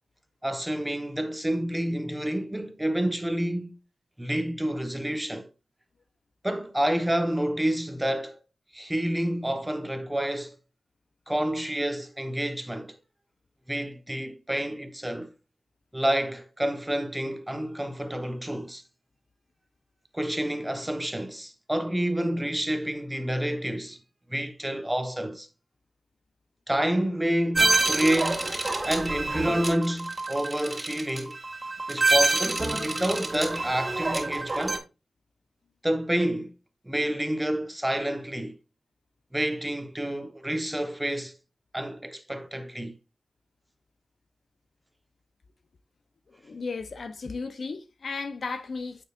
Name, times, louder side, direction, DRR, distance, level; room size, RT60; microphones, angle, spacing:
voice 1, 0.4-3.8 4.2-5.5 6.4-8.4 8.7-10.5 11.3-13.0 13.7-15.3 15.9-18.8 20.1-24.0 24.3-25.5 26.7-28.5 28.8-31.4 31.9-34.8 35.8-36.5 36.8-38.6 39.3-41.3 41.7-43.0, right 1 dB, 10° right, 1.2 m, -29 dB
sound 1, 27.5-34.8, right 2 dB, 30° right, 2.1 m, -27 dB
voice 2, 46.3-49.0, left 4 dB, 60° left, 0.7 m, -35 dB
9.2 x 6.5 x 2.5 m
cardioid pair, 65°, 0 cm